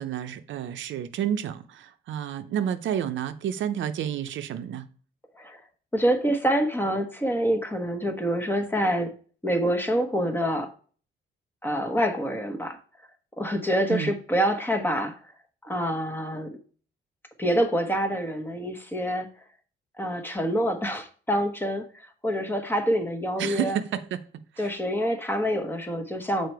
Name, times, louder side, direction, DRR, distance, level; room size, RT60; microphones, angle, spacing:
voice 1, 0.0-4.9 13.9-14.1 23.4-24.2 24.5-24.7, right 9 dB, 70° right, 0.6 m, -30 dB
voice 2, 5.9-9.1 9.4-10.7 11.6-12.8 13.4-15.2 15.6-16.5 17.4-19.3 20.0-23.8 24.6-26.5, equal, 10° left, 1.2 m, -26 dB
6.6 x 4.4 x 4.6 m
cardioid pair, 90°, 20 cm